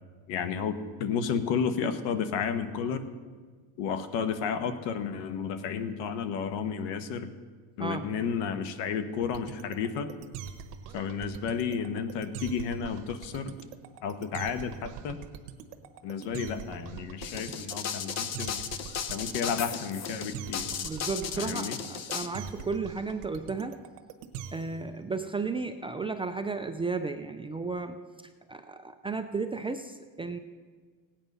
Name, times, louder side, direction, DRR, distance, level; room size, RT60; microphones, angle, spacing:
voice 1, 0.3-3.0 3.8-7.3 7.8-10.1 10.9-13.5 14.0-15.2 16.0-18.6 19.1-20.7 21.4-21.8, left 6 dB, 75° left, 10 dB, 1.3 m, -32 dB
sound 1, 9.2-24.9, right 8 dB, 80° right, 1.2 m, -42 dB
sound 2, 17.2-22.3, left 8 dB, 40° left, 0.8 m, -35 dB
voice 2, 20.8-23.8 24.5-28.0 28.5-30.4, right 4 dB, 15° right, 7 dB, 0.4 m, -34 dB
17.0 x 9.0 x 5.4 m, 1.5 s
cardioid pair, 130°, 43 cm